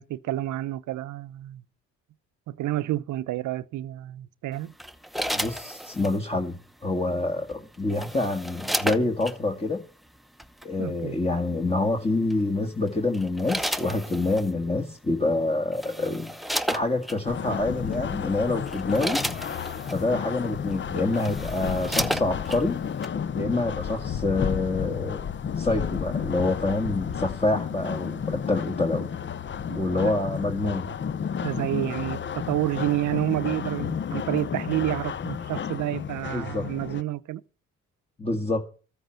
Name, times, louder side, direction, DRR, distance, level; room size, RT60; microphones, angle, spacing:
voice 1, 0.0-1.6 2.5-4.7 10.8-11.2 29.7-30.2 31.4-37.4, right 14 dB, 75° right, 0.7 m, -29 dB
sound 1, 4.8-6.2 7.5-9.4 10.4-10.6 12.3-12.6 13.1-14.5 15.3-15.4 15.7-17.2 17.9-18.1 18.5-20.0 20.7-20.8 21.1-22.6 23.0-23.1, equal, ahead, 0.8 m, -32 dB
voice 2, 5.3-9.8 10.6-16.3 16.7-19.2 19.9-22.8 23.4-25.2 25.6-29.1 29.7-30.9 36.3-36.7 38.2-38.6, left 2 dB, 20° left, 1.8 m, -27 dB
sound 2, 17.2-37.0, left 7 dB, 40° left, 0.7 m, -32 dB
14.0 x 7.9 x 7.5 m
cardioid pair, 90°, 30 cm